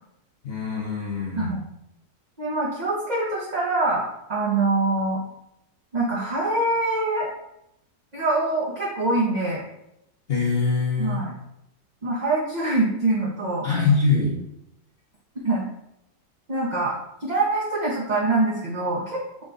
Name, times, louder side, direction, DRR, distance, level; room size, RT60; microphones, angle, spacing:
voice 1, 0.4-1.6 10.3-11.2 13.6-14.4, left 4 dB, 45° left, -4 dB, 0.9 m, -23 dB
voice 2, 2.4-5.2 5.9-7.3 8.1-9.6 11.0-11.3 12.0-13.7 15.4-15.6 16.5-16.9 17.2-19.4, right 2 dB, 40° right, -5 dB, 0.7 m, -24 dB
6.2 x 2.3 x 3.8 m, 0.82 s
omnidirectional pair, 1.7 m